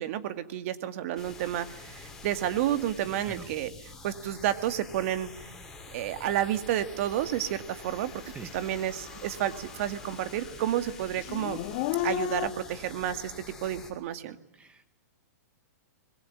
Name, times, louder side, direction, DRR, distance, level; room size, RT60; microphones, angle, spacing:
voice 1, 0.0-3.7 4.0-5.5 5.9-8.1 8.5-11.6 12.0-14.4, right 11 dB, 50° right, 10 dB, 2.3 m, -30 dB
sound 1, 1.2-13.9, left 3 dB, 5° left, 5.8 m, -47 dB
Dog / Siren, 8.1-8.2 8.7-10.1 10.4-12.5, left 12 dB, 45° left, 2.1 m, -33 dB
voice 2, 14.5-14.9, right 3 dB, 10° right, 10 dB, 1.7 m, -44 dB
25.5 x 22.0 x 9.9 m, 0.84 s
hypercardioid pair, 140°, 9 cm